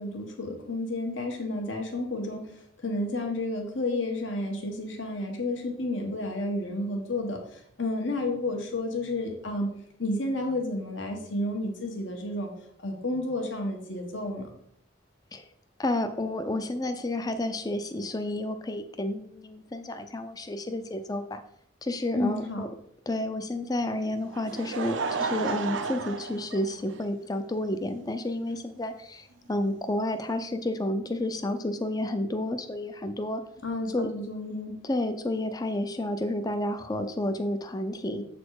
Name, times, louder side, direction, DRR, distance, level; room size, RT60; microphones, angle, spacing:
voice 1, 0.0-2.4 2.8-7.4 7.8-9.7 10.0-12.5 12.8-14.5 22.1-22.6 33.6-34.7, left 2 dB, 75° left, 3 dB, 1.4 m, -31 dB
voice 2, 15.8-21.4 21.8-22.7 23.1-33.4 33.9-34.1 34.8-38.2, left 1 dB, 20° left, 8 dB, 0.5 m, -30 dB
Laughter, 24.0-27.3 28.1-28.2 29.6-29.7, right 4 dB, 75° right, 0.6 m, -33 dB
7.7 x 4.2 x 4.8 m, 0.68 s
head